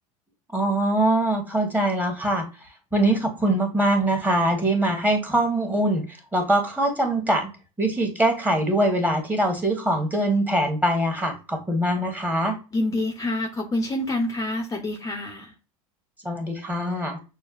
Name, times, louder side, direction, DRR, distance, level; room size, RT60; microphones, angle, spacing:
voice 1, 0.5-2.4 2.9-6.0 6.3-7.5 7.8-12.6 16.2-17.2, right 1 dB, 10° right, 4 dB, 1.4 m, -23 dB
voice 2, 12.7-15.5, left 1 dB, 20° left, 3 dB, 0.8 m, -27 dB
6.2 x 2.2 x 2.4 m, 0.32 s
hypercardioid pair, 90°, 17 cm